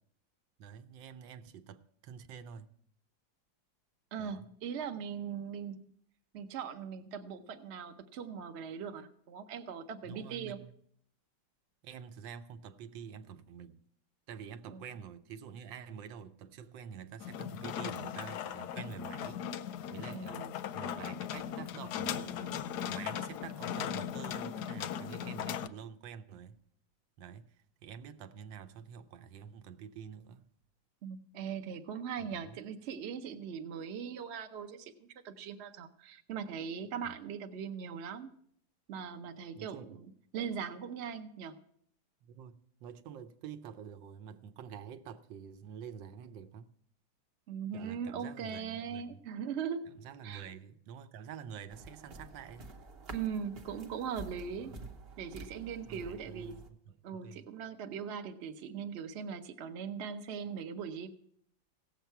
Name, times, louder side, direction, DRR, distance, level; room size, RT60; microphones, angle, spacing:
voice 1, 0.6-2.7 4.2-4.5 10.0-10.7 11.8-13.8 14.3-20.5 20.7-22.6 22.9-26.6 27.2-27.5 27.8-30.5 32.3-32.6 37.0-37.2 39.6-40.0 42.2-46.7 47.7-49.2 49.9-52.8 54.6-54.8 55.8-57.5, right 7 dB, 80° right, 1.4 m, -48 dB
voice 2, 4.1-5.9 6.3-10.6 14.7-14.9 20.1-20.5 31.0-38.3 38.9-40.1 40.3-41.6 47.5-49.9 50.2-50.5 53.1-54.8 55.2-56.6 57.0-61.1, right 7 dB, 55° right, 0.7 m, -40 dB
sound 1, 17.2-25.7, left 9 dB, 70° left, 1.0 m, -38 dB
sound 2, 51.7-56.7, right 3 dB, 40° right, 1.0 m, -49 dB
17.0 x 7.3 x 4.5 m
omnidirectional pair, 2.1 m